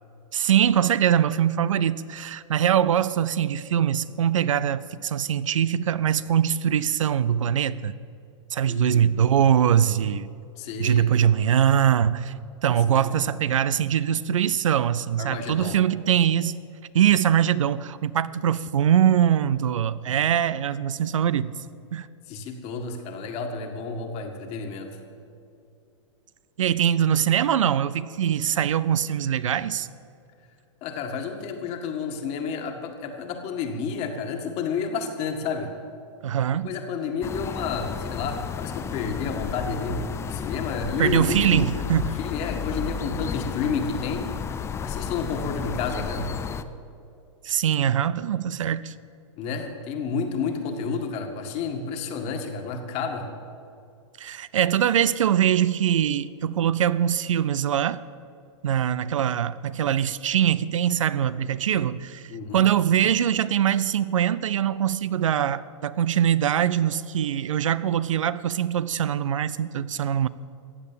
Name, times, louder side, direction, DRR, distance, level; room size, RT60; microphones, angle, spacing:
voice 1, 0.3-7.9 8.5-10.3 10.8-12.3 12.6-16.6 16.9-21.5 21.9-22.1 26.6-29.9 36.2-36.7 41.0-42.2 47.4-48.9 54.2-58.0 58.6-62.3 62.5-70.3, right 9 dB, 85° right, 0.5 m, -22 dB
voice 2, 8.7-9.1 10.6-11.1 12.7-13.2 15.2-15.8 22.3-24.9 30.8-35.7 36.6-41.7 42.2-44.3 44.8-46.4 49.4-53.3 62.3-62.6, left 5 dB, 40° left, 1.8 m, -30 dB
sound 1, 37.2-46.6, left 7 dB, 15° left, 0.5 m, -32 dB
15.0 x 8.4 x 7.3 m
hypercardioid pair, 120°, 16 cm